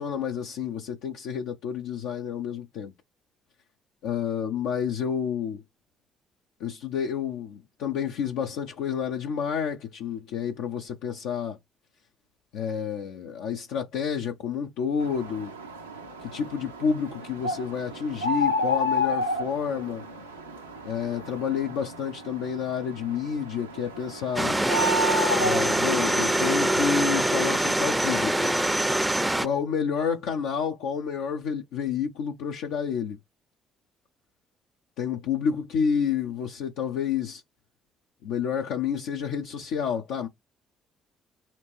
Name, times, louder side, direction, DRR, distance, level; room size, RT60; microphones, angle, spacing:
voice 1, 0.0-2.9 4.0-5.6 6.6-11.6 12.5-15.5 16.2-20.0 20.8-24.6 25.4-28.3 29.4-33.2 35.0-37.4 38.2-40.3, left 7 dB, 70° left, 0.6 m, -29 dB
sound 1, 15.0-26.7, left 2 dB, 90° right, 0.7 m, -31 dB
sound 2, 24.4-29.5, right 1 dB, 10° right, 0.5 m, -24 dB
4.3 x 2.5 x 3.0 m
figure-of-eight pair, 45°, 0 cm